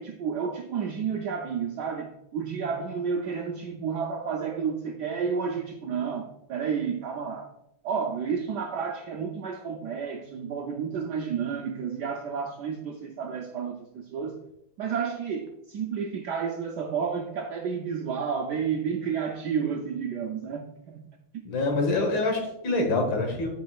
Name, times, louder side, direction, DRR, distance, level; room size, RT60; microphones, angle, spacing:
voice 1, 0.0-7.5 7.8-14.4 14.8-21.1, right 6 dB, 75° right, 0.9 m, -31 dB
voice 2, 21.5-23.5, left 2 dB, 65° left, 1.8 m, -25 dB
8.3 x 5.4 x 2.3 m
omnidirectional pair, 2.3 m